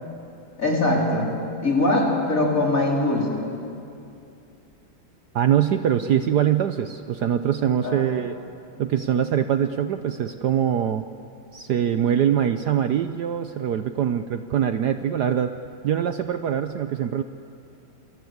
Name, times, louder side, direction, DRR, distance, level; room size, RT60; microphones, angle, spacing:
voice 1, 0.6-3.4 7.8-8.1, left 2 dB, 40° left, -2 dB, 4.7 m, -22 dB
voice 2, 5.3-8.4 8.8-11.0 11.5-15.6 15.8-17.2, right 9 dB, 65° right, 9 dB, 1.2 m, -23 dB
28.5 x 22.0 x 8.0 m, 2.6 s
omnidirectional pair, 2.2 m